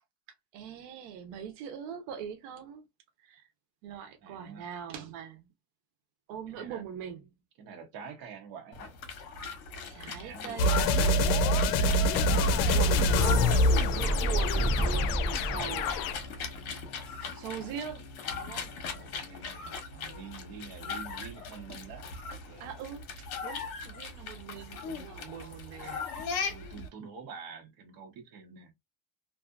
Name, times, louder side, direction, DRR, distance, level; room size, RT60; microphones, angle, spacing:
voice 1, 0.5-2.9 3.2-3.5 3.8-5.5 6.3-7.3 9.9-11.2 11.9-12.4 12.7-13.5 13.9-15.9 17.2-18.7 22.6-26.0, right 8 dB, 80° right, 0.8 m, -42 dB
voice 2, 4.2-4.7 6.5-6.8 7.6-8.9 10.2-10.8 18.8-22.7 24.0-24.9 25.4-26.1 26.5-28.7, right 6 dB, 45° right, 0.9 m, -48 dB
sound 1, 8.7-26.9, left 5 dB, 85° left, 1.2 m, -39 dB
sound 2, 10.6-16.1, left 1 dB, 65° left, 0.5 m, -26 dB
sound 3, 10.8-16.3, right 1 dB, 10° right, 0.5 m, -32 dB
2.7 x 2.4 x 2.3 m
cardioid pair, 170°, 48 cm